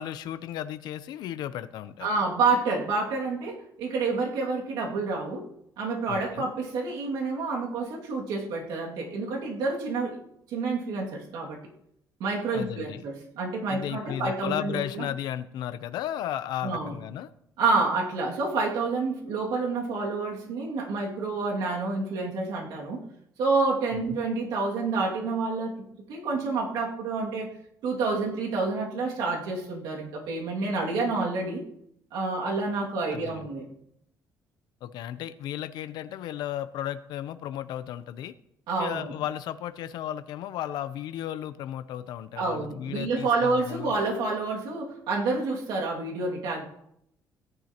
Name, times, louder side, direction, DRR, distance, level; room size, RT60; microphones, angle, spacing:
voice 1, 0.0-2.1 6.1-6.5 12.5-13.0 13.7-17.3 33.1-33.5 34.8-38.3 38.8-43.9, left 11 dB, 80° left, 12 dB, 0.6 m, -34 dB
voice 2, 2.0-5.4 5.8-10.2 10.5-11.6 12.2-15.1 16.6-16.9 17.6-23.0 23.4-27.5 27.8-31.6 32.1-33.7 38.7-39.1 42.4-46.7, right 3 dB, 85° right, -1 dB, 2.3 m, -28 dB
17.0 x 11.0 x 2.9 m, 0.75 s
cardioid pair, 115°, 7 cm